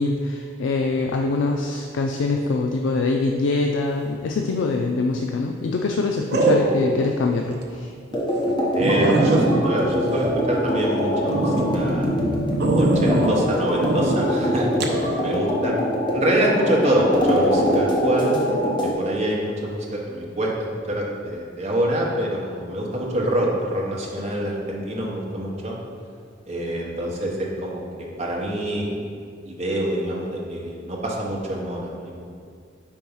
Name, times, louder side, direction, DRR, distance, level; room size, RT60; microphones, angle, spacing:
voice 1, 0.0-7.9, left 3 dB, 75° left, 2 dB, 0.4 m, -24 dB
sound 1, 4.7-5.1 6.3-7.1 7.5-7.6 8.1-8.2 8.5-8.6 8.8-10.8 11.3-11.7 12.6-13.4 13.8-14.2 14.8-15.0, right 2 dB, 55° right, 0.6 m, -22 dB
sound 2, 8.1-18.9, equal, 25° left, 0.9 m, -23 dB
voice 2, 8.7-12.1 12.7-15.7 16.1-20.5 20.9-25.8 26.5-29.1 29.4-32.2, right 1 dB, 35° right, -2 dB, 1.0 m, -25 dB
4.5 x 4.5 x 5.4 m, 2.2 s
head